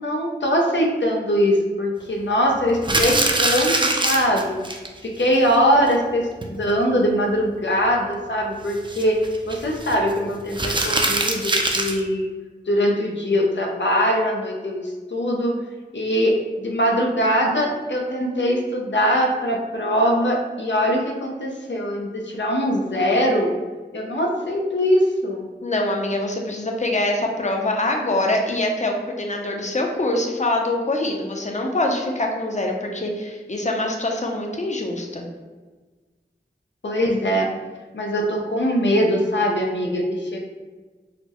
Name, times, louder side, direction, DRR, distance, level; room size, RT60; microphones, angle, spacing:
voice 1, 0.0-4.7 5.0-9.2 9.4-12.3 12.7-15.6 15.9-23.5 23.9-25.5 36.8-37.5 37.9-40.4, equal, 90° left, 0 dB, 0.5 m, -22 dB
sound 1, 2.8-4.9 5.2-5.3 5.5-5.6 5.9-6.0 6.4-6.7 8.7-9.9 10.5-12.0, right 2 dB, 25° right, 0.4 m, -22 dB
voice 2, 25.6-35.3, left 1 dB, 40° left, 1 dB, 0.5 m, -24 dB
4.1 x 2.0 x 2.9 m, 1.3 s
wide cardioid pair, 50°, 18 cm